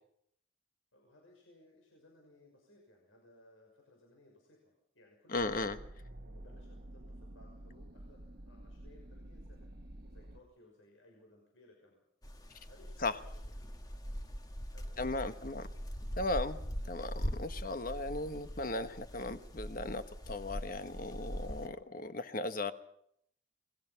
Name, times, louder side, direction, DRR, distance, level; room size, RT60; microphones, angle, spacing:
voice 1, 0.9-5.8 6.2-9.7 10.1-12.0 12.7-13.5 14.7-15.3, left 1 dB, 80° left, 0 dB, 6.0 m, -62 dB
voice 2, 5.3-5.8 13.0-13.1 15.0-15.6 16.2-16.6 16.9-22.7, left 2 dB, 45° left, 10 dB, 1.3 m, -36 dB
sound 1, 5.3-10.4, right 1 dB, 50° right, 1.2 m, -50 dB
sound 2, 12.2-21.7, equal, 20° left, 1.4 m, -42 dB
28.0 x 20.5 x 5.9 m, 0.72 s
head